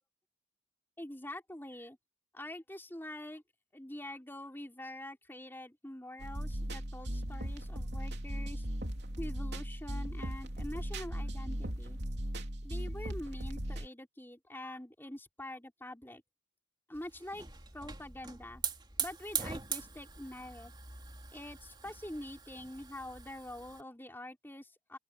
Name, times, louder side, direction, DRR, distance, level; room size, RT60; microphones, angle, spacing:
voice 1, 1.0-2.0 2.3-3.4 3.7-8.7 9.2-12.0 12.6-16.2 16.9-17.5 17.7-18.6 19.0-20.7 21.3-25.0, left 1 dB, 10° left, 4.2 m, -45 dB
sound 1, 6.2-13.9, equal, 55° right, 3.2 m, -38 dB
Hiss / Fire, 16.9-23.8, right 6 dB, 25° right, 3.3 m, -42 dB
open air
head